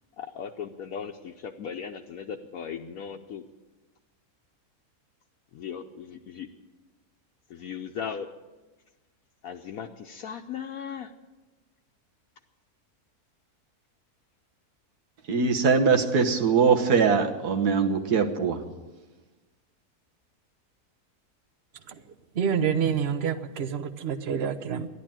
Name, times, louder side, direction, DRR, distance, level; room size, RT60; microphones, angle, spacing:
voice 1, 0.2-3.4 5.5-6.5 7.5-8.3 9.4-11.1, left 7 dB, 70° left, 3 dB, 1.1 m, -37 dB
voice 2, 15.3-18.6, right 5 dB, 85° right, 5 dB, 1.8 m, -22 dB
voice 3, 22.4-24.9, right 7 dB, 50° right, 11 dB, 1.0 m, -27 dB
13.5 x 11.0 x 8.9 m, 1.2 s
omnidirectional pair, 1.6 m